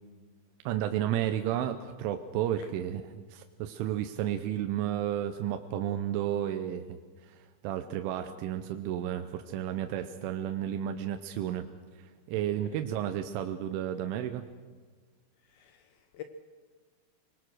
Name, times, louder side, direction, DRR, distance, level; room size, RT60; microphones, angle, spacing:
voice 1, 0.7-3.0 3.3-7.0 7.3-7.4 7.6-11.7 12.0-14.4, right 11 dB, 85° right, 7 dB, 3.3 m, -32 dB
voice 2, 15.4-16.2, left 10 dB, 75° left, 8 dB, 2.3 m, -47 dB
25.0 x 20.5 x 6.3 m, 1.5 s
omnidirectional pair, 5.5 m